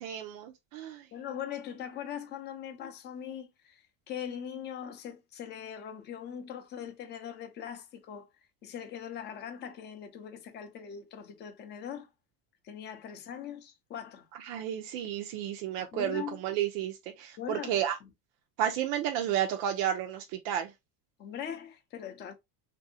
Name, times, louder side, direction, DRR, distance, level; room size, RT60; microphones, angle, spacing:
voice 1, 0.0-1.1 14.4-18.0 18.6-20.7, right 10 dB, 85° right, 0.7 m, -32 dB
voice 2, 1.1-8.3 8.6-12.1 12.6-14.3 15.8-16.4 17.4-17.8 21.2-22.3, left 9 dB, 25° left, 0.4 m, -41 dB
3.3 x 2.6 x 2.6 m
cardioid pair, 170°, 47 cm